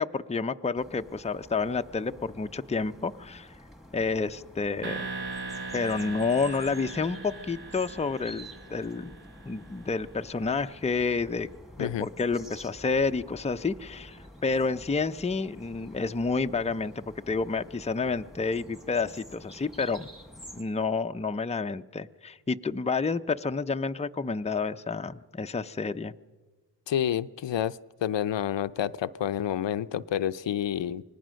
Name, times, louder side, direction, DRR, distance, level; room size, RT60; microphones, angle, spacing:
voice 1, 0.0-3.5 3.9-5.1 5.7-9.2 9.5-11.5 11.8-20.1 20.5-26.1, left 4 dB, 15° left, 8 dB, 0.6 m, -29 dB
sound 1, 0.7-20.6, equal, ahead, 1.6 m, -49 dB
sound 2, 4.8-9.7, right 3 dB, 60° right, 1.7 m, -39 dB
voice 2, 26.9-31.0, left 10 dB, 80° left, 14 dB, 0.7 m, -29 dB
25.0 x 19.0 x 6.3 m, 1.3 s
cardioid pair, 65°, 43 cm